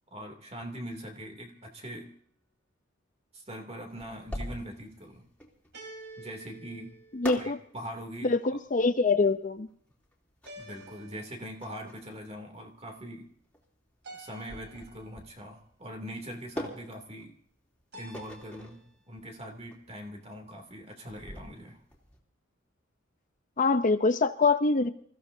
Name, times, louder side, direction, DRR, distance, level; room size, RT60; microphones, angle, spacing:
voice 1, 0.1-2.1 3.3-5.3 6.2-6.9 7.3-8.4 10.6-13.3 14.1-17.3 17.9-21.8, equal, 30° right, 3 dB, 2.7 m, -42 dB
sound 1, 1.3-2.0 5.7-7.8 10.4-11.9 14.0-15.2 17.9-18.9, right 2 dB, 60° right, 4.0 m, -50 dB
sound 2, 3.9-22.2, left 1 dB, 5° left, 3.1 m, -45 dB
voice 2, 7.2-7.6 8.2-9.7 23.6-24.9, left 3 dB, 40° left, 10 dB, 0.7 m, -24 dB
28.0 x 15.5 x 2.7 m, 0.64 s
head